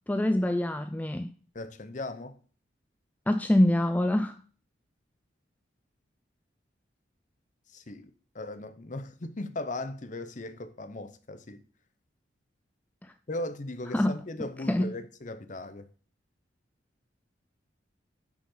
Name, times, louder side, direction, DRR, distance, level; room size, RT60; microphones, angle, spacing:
voice 1, 0.1-1.3 3.3-4.4 13.9-14.2 14.7-14.9, left 1 dB, 10° left, 0.3 m, -25 dB
voice 2, 1.5-2.4 7.7-11.6 13.3-15.9, left 2 dB, 40° left, 0.8 m, -38 dB
10.0 x 5.9 x 3.8 m
head